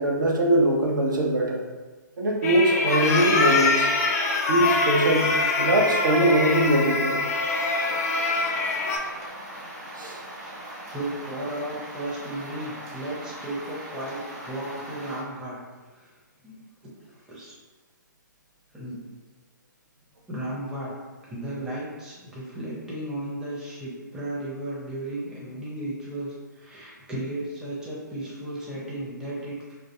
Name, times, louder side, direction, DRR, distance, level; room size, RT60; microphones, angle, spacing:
voice 1, 0.0-1.6 2.2-3.9 4.5-7.2 10.0-10.2, right 1 dB, 75° right, -1 dB, 0.5 m, -22 dB
sound 1, 2.4-9.0, left 3 dB, 50° left, 0.3 m, -24 dB
sound 2, 7.5-15.2, right 1 dB, 45° right, 0.9 m, -40 dB
voice 2, 10.9-15.6 15.9-16.1 16.4-17.6 18.7-19.0 20.3-20.9 21.2-29.7, right 1 dB, 5° right, -7 dB, 0.5 m, -35 dB
2.3 x 2.1 x 2.7 m, 1.3 s
figure-of-eight pair, 130°, 11 cm